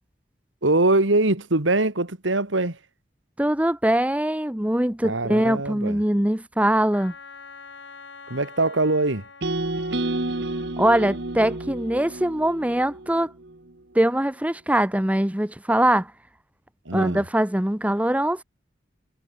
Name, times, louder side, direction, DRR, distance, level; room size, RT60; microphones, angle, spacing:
voice 1, 0.6-2.8 5.0-6.0 8.3-9.3 16.9-17.2, right 2 dB, 90° right, 2.6 m, -22 dB
voice 2, 3.4-7.1 10.8-13.3 13.9-16.1 16.9-18.4, right 1 dB, 5° right, 0.9 m, -22 dB
Wind instrument woodwind instrument, 6.9-10.8, left 4 dB, 75° left, 5.4 m, -45 dB
sound 1, 9.4-13.6, right 2 dB, 60° right, 1.5 m, -30 dB
head